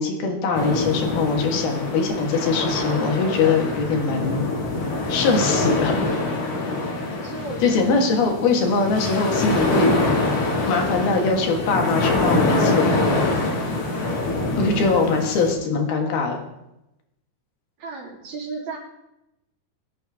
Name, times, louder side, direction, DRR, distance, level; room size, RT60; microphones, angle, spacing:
voice 1, 0.0-4.4 5.1-6.1 7.6-10.1 10.7-13.3 14.6-16.4, left 4 dB, 70° left, 2 dB, 3.5 m, -22 dB
sound 1, 0.5-15.5, left 2 dB, 45° left, 2.8 m, -24 dB
voice 2, 7.2-8.0 14.5-14.9 17.8-18.8, right 4 dB, 45° right, -3 dB, 4.1 m, -34 dB
22.0 x 8.6 x 3.6 m, 0.89 s
omnidirectional pair, 4.7 m